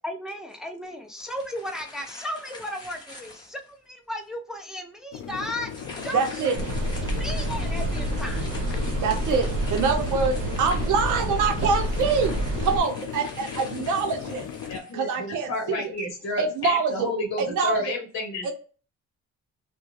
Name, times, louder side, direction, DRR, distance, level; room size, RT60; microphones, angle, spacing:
voice 1, 0.0-5.7 6.0-6.5 7.0-8.5, left 1 dB, ahead, 3 dB, 0.4 m, -35 dB
sound 1, 1.2-3.7 4.3-4.4 5.6-15.4, left 2 dB, 15° left, 1.0 m, -44 dB
sound 2, 5.1-14.8, left 8 dB, 80° left, 0.5 m, -37 dB
voice 2, 6.1-6.6 9.0-12.4 12.6-14.4 14.9-15.8 16.4-17.1 17.5-17.8 18.4-18.5, right 5 dB, 85° right, 5 dB, 0.7 m, -25 dB
sound 3, 6.5-12.8, right 1 dB, 60° right, 1.0 m, -28 dB
voice 3, 14.7-18.5, left 2 dB, 45° left, 0 dB, 0.8 m, -31 dB
2.4 x 2.2 x 3.1 m, 0.38 s
cardioid pair, 90°, 30 cm